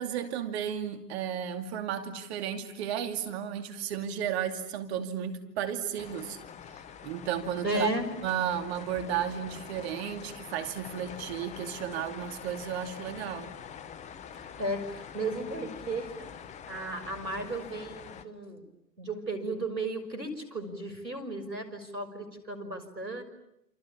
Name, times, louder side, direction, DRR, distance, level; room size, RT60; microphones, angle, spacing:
voice 1, 0.0-6.4 7.0-7.9 8.2-13.5, right 9 dB, 40° right, 7 dB, 2.6 m, -33 dB
sound 1, 6.0-18.2, left 8 dB, 15° left, 1.1 m, -45 dB
voice 2, 7.6-8.1 14.3-16.3 16.7-18.7 19.0-23.2, right 2 dB, 85° right, 9 dB, 6.2 m, -34 dB
28.5 x 28.0 x 7.2 m, 0.82 s
figure-of-eight pair, 120°, 50 cm